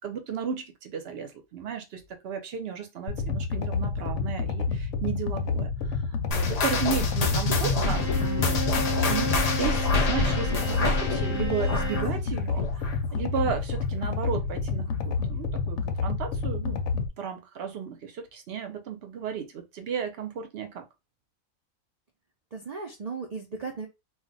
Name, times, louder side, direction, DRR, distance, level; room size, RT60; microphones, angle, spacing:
voice 1, 0.0-6.0 6.3-8.6 9.1-16.8 17.2-20.8, right 7 dB, 60° right, 0.7 m, -34 dB
sound 1, 3.1-17.1, left 4 dB, 70° left, 0.8 m, -29 dB
sound 2, 6.3-13.2 13.4-13.8 14.3-14.4 15.2-15.3, left 3 dB, 85° left, 0.3 m, -28 dB
voice 2, 6.8-7.3 22.5-23.9, right 4 dB, 85° right, 0.3 m, -37 dB
Bowed string instrument, 7.9-12.2, left 1 dB, 15° right, 0.8 m, -34 dB
2.3 x 2.1 x 3.8 m
omnidirectional pair, 1.4 m